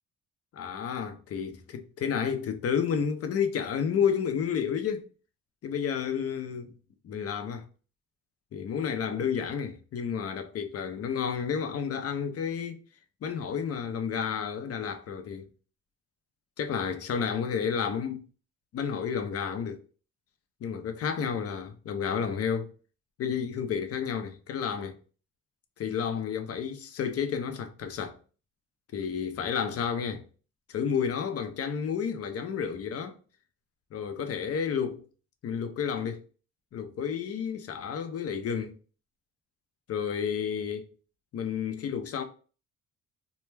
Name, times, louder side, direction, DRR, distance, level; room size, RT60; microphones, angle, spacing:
voice 1, 0.5-5.1 5.6-6.7 7.0-7.6 8.5-12.8 13.2-15.5 16.6-18.3 18.7-19.8 20.6-22.7 23.2-25.0 25.8-28.2 28.9-30.2 30.7-33.2 33.9-35.1 35.4-36.2 36.7-38.8 39.9-40.9 41.3-42.2, left 7 dB, 50° left, 0.5 m, -31 dB
2.2 x 2.2 x 3.1 m
cardioid pair, 90°, 30 cm